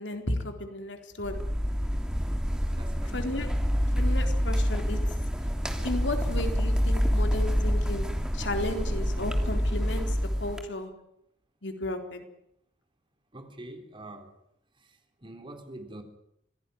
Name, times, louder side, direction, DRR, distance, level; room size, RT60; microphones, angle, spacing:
voice 1, 0.0-1.4 3.1-3.5 4.0-5.1 5.8-10.9 11.6-12.3, left 1 dB, 70° left, 5 dB, 3.9 m, -34 dB
sound 1, 1.2-10.6, equal, 5° right, 2.9 m, -27 dB
voice 2, 2.7-3.2 13.3-14.4 14.7-16.0, right 1 dB, 25° right, 6 dB, 3.7 m, -45 dB
26.0 x 17.5 x 9.4 m, 0.77 s
head